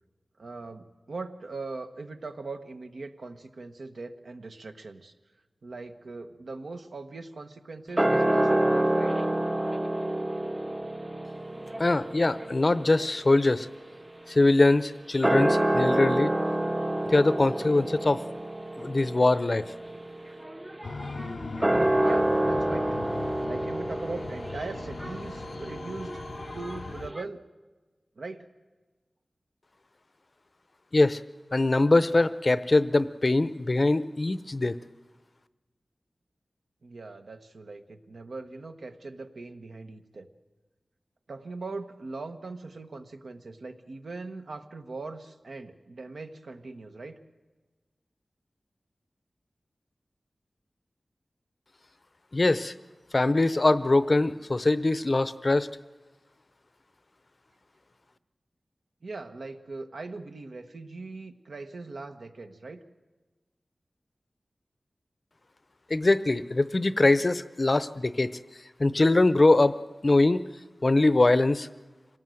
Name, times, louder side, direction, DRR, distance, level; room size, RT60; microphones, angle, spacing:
voice 1, 0.4-5.1 5.6-9.2 22.0-23.1 23.5-26.2 26.5-27.4 28.2-28.5 36.8-40.3 41.3-47.2 59.0-62.8, right 3 dB, 75° right, 6 dB, 1.2 m, -40 dB
sound 1, 8.0-14.6 15.1-27.2, right 1 dB, 20° right, 0.6 m, -28 dB
voice 2, 11.8-13.7 14.3-16.4 17.1-18.2 18.8-19.6 30.9-31.2 31.5-34.8 52.3-52.7 53.1-55.7 65.9-68.3 68.8-69.7 70.0-70.4 70.8-71.7, left 2 dB, 40° left, 14 dB, 0.6 m, -22 dB
sound 2, 20.8-27.1, left 4 dB, 75° left, 0.6 m, -39 dB
26.0 x 18.0 x 7.7 m, 1.3 s
wide cardioid pair, 85°, 0 cm